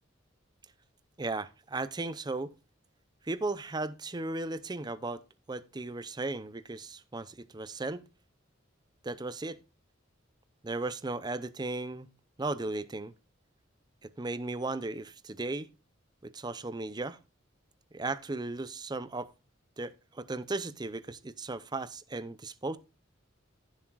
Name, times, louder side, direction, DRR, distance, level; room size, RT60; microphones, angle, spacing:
voice 1, 1.2-2.5 3.2-5.2 5.5-8.0 9.0-9.6 10.6-12.1 12.4-13.1 14.0-15.7 16.2-17.2 17.9-19.3 19.8-22.8, right 2 dB, 20° right, 0.6 m, -36 dB
15.0 x 7.3 x 2.4 m
head